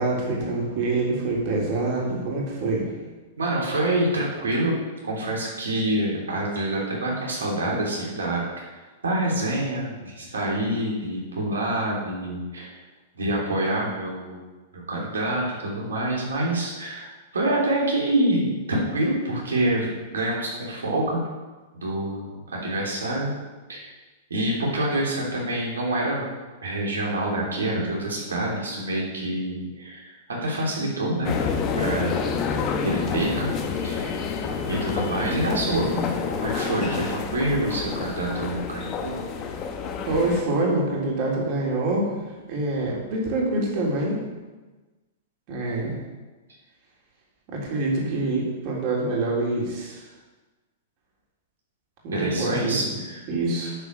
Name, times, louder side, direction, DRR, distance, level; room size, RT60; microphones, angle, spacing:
voice 1, 0.0-2.9 40.1-42.2 42.5-44.2 45.5-46.0 47.5-50.0 52.0-53.0 53.3-53.8, right 2 dB, 50° right, -3 dB, 3.6 m, -25 dB
voice 2, 3.4-4.8 5.0-8.7 9.0-12.7 13.1-14.4 14.7-21.2 21.7-23.3 23.7-23.9 24.3-26.3 26.6-31.3 31.7-32.2 32.8-33.5 33.8-34.2 34.7-39.2 52.1-53.3, right 1 dB, 90° right, -3 dB, 3.1 m, -26 dB
sound 1, 31.2-40.4, left 5 dB, 35° left, 1.2 m, -28 dB
10.0 x 5.0 x 6.7 m, 1.2 s
hypercardioid pair, 115°, 0 cm